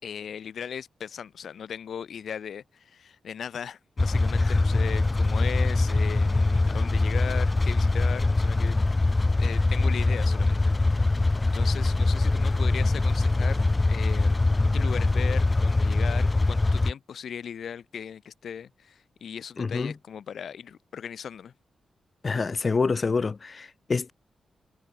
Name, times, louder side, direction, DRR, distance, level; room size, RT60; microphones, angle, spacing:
voice 1, 0.0-8.8 9.4-11.1 11.4-13.6 13.9-14.4 14.7-21.5, left 8 dB, 70° left, 7.2 m, -38 dB
sound 1, 4.0-16.9, left 2 dB, 20° left, 1.9 m, -23 dB
voice 2, 19.6-19.9 22.2-24.1, left 4 dB, 35° left, 1.7 m, -27 dB
wide cardioid pair, 140°, 0 cm